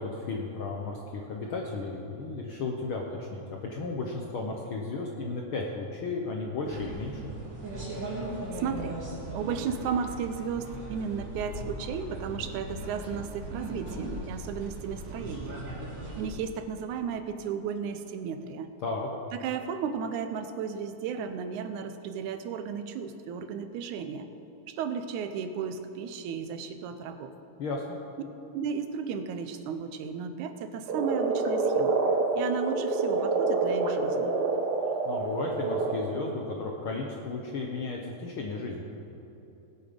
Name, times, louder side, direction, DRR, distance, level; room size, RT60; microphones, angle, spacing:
voice 1, 0.0-7.3 18.8-19.1 27.6-28.0 35.0-38.8, left 3 dB, 65° left, 0 dB, 1.3 m, -34 dB
sound 1, 6.6-16.3, right 1 dB, 35° right, 3.8 m, -38 dB
voice 2, 8.6-9.0 9.3-15.6 16.2-18.7 19.3-24.3 24.7-27.3 28.5-32.0 32.3-34.4, right 6 dB, 85° right, 9 dB, 2.1 m, -34 dB
Frog, 30.9-36.0, right 3 dB, 55° right, 1.1 m, -27 dB
19.0 x 8.3 x 5.1 m, 3.0 s
omnidirectional pair, 3.4 m